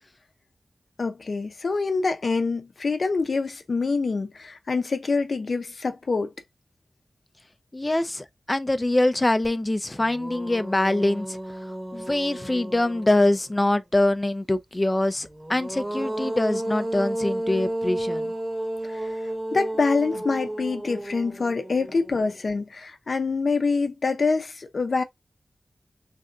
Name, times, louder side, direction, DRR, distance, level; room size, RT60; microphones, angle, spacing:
voice 1, 1.0-6.3 18.8-19.1 19.5-25.0, left 4 dB, 65° left, 0.6 m, -25 dB
voice 2, 7.7-11.4 11.9-18.3, left 1 dB, 20° left, 0.5 m, -24 dB
sound 1, 9.4-9.5 9.9-13.6 15.3-22.5, right 1 dB, 25° right, 1.1 m, -32 dB
3.4 x 2.5 x 3.6 m
wide cardioid pair, 95°, 0 cm